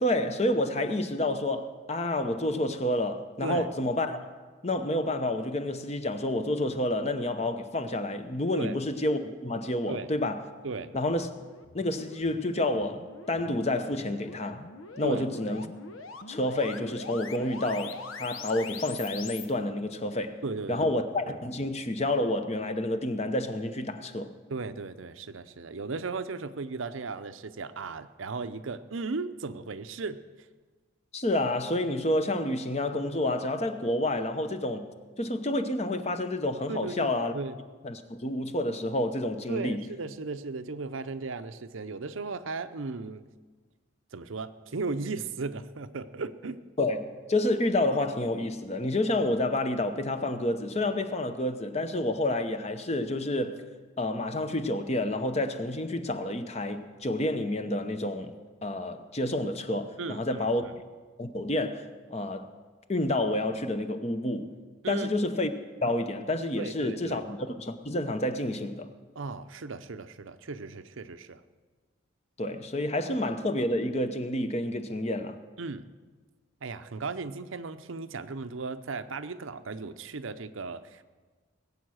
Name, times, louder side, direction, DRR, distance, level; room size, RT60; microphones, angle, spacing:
voice 1, 0.0-4.3 4.6-10.4 10.9-11.3 11.7-14.6 15.0-15.7 16.3-20.4 20.7-24.3 31.1-34.9 35.2-37.3 37.8-39.8 46.8-53.6 54.0-58.3 58.6-60.7 61.2-62.5 62.9-64.5 64.9-65.5 65.8-68.9 72.4-75.4, left 1 dB, 30° left, 0.8 m, -29 dB
sound 1, 10.8-19.5, left 5 dB, 85° left, 1.0 m, -44 dB
voice 2, 20.4-20.9 24.5-30.2 36.7-37.6 39.5-43.2 44.1-46.6 60.0-60.7 64.8-65.1 66.6-67.2 69.2-71.4 75.6-75.8 76.6-81.0, right 4 dB, 75° right, 0.7 m, -36 dB
20.0 x 8.4 x 6.4 m
head